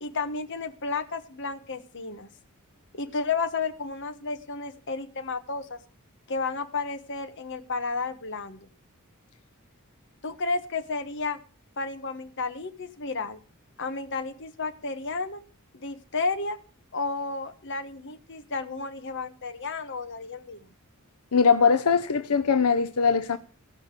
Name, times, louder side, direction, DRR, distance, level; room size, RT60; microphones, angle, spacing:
voice 1, 0.0-2.3 2.9-5.8 6.3-8.7 10.2-11.4 11.8-13.4 13.8-15.4 15.7-16.6 16.9-20.6, left 4 dB, 55° left, 1.2 m, -32 dB
voice 2, 21.3-23.4, left 5 dB, 85° left, 0.7 m, -21 dB
16.0 x 5.7 x 8.1 m
head